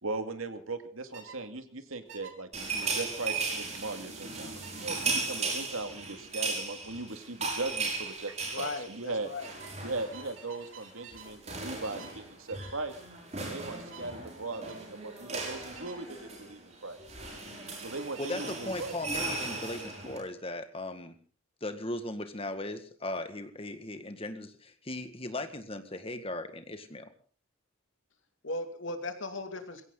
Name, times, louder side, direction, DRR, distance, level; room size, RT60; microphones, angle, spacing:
voice 1, 0.0-9.3 9.8-13.0 13.5-17.0 17.8-18.9, right 2 dB, 85° right, 8 dB, 2.3 m, -38 dB
sound 1, 1.1-1.4 2.1-2.3 2.8-3.0 3.7-3.9 4.6-4.9 6.0-6.2 7.6-7.9 8.2-8.5 9.4-11.4 11.8-12.2 12.5-12.8 13.6-14.1 14.5-14.8 15.7-16.0 17.9-19.2, right 6 dB, 65° right, 4.3 m, -51 dB
sound 2, 2.5-10.4 10.7-10.9 11.1-20.2, right 3 dB, 30° right, 6.2 m, -37 dB
voice 2, 8.5-9.5 28.4-29.9, left 2 dB, 65° left, 7 dB, 2.6 m, -37 dB
voice 3, 18.2-21.1 21.6-27.1, left 2 dB, 25° left, 8 dB, 1.9 m, -38 dB
21.5 x 16.5 x 4.0 m, 0.42 s
head